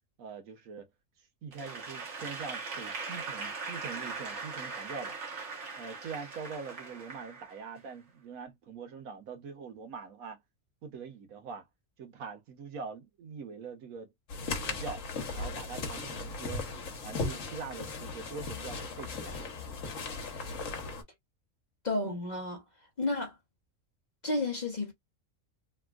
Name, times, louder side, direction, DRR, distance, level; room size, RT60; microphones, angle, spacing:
voice 1, 0.2-0.9 1.4-5.2 5.8-10.4 10.8-11.7 12.0-14.1 14.6-15.0 15.3-16.7 17.0-19.4, right 5 dB, 85° right, 1.3 m, -43 dB
Applause / Crowd, 1.5-7.9, right 4 dB, 60° right, 1.4 m, -40 dB
sound 1, 14.3-21.0, left 3 dB, 70° left, 1.3 m, -37 dB
voice 2, 21.8-22.6 23.0-23.4 24.2-24.9, left 2 dB, 40° left, 0.8 m, -31 dB
3.4 x 2.3 x 2.3 m
omnidirectional pair, 1.4 m